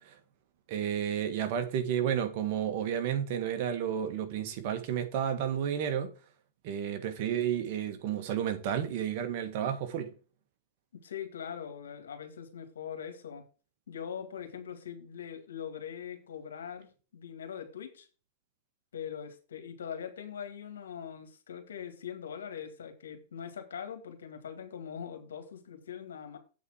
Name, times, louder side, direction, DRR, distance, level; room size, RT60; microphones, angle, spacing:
voice 1, 0.7-6.1 6.6-10.1, right 9 dB, 55° right, 1.6 m, -31 dB
voice 2, 10.9-13.4 13.9-18.1 18.9-26.4, left 8 dB, 85° left, 2.0 m, -42 dB
8.3 x 4.3 x 6.3 m
hypercardioid pair, 120°, 0 cm